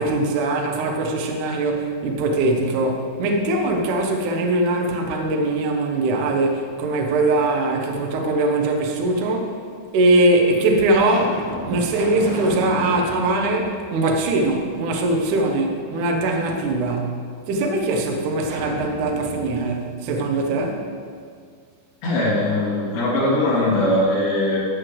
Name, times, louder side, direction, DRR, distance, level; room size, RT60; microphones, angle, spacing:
voice 1, 0.0-9.5 9.9-17.2 17.5-20.9, right 2 dB, 75° right, 1 dB, 1.8 m, -21 dB
sound 1, 3.2-4.2 4.7-5.9 7.2-8.0 8.9-9.0 9.8-9.9 10.5-14.6 15.0-15.1 18.4-21.2, equal, 55° right, 1.6 m, -36 dB
voice 2, 22.0-24.6, left 1 dB, 55° left, -8 dB, 4.8 m, -20 dB
14.0 x 5.1 x 8.0 m, 2.1 s
omnidirectional pair, 5.5 m